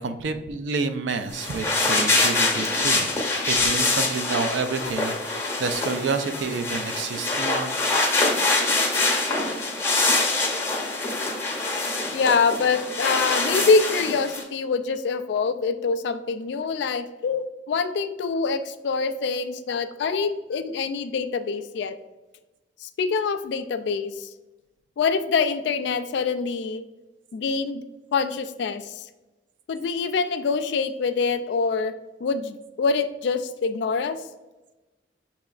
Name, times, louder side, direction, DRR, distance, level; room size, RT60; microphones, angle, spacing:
voice 1, 0.0-3.1 3.4-7.8, right 4 dB, 75° right, 9 dB, 0.4 m, -29 dB
sound 1, 1.3-14.4, left 2 dB, 15° left, 0.7 m, -24 dB
voice 2, 12.1-21.9 22.8-24.3 25.0-26.8 27.3-27.8 28.1-29.0 29.7-31.9 32.2-34.2, left 4 dB, 65° left, 9 dB, 0.3 m, -25 dB
6.7 x 2.9 x 2.4 m, 1.1 s
head